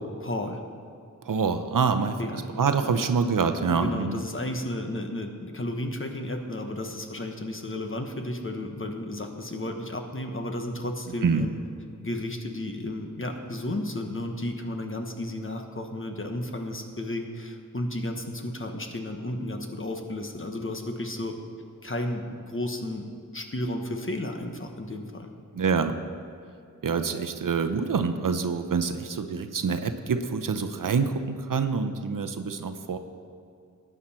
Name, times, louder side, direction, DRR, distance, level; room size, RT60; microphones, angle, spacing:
voice 1, 0.2-0.6 2.2-2.5 2.8-3.0 3.7-11.6 12.0-21.4 21.8-23.1 23.3-25.3, left 1 dB, 40° left, 4 dB, 1.2 m, -33 dB
voice 2, 1.3-2.2 2.6-4.2 11.2-11.4 25.5-26.0 26.8-33.0, right 5 dB, 75° right, 9 dB, 0.7 m, -26 dB
13.5 x 9.2 x 4.3 m, 2.4 s
cardioid pair, 45°, 33 cm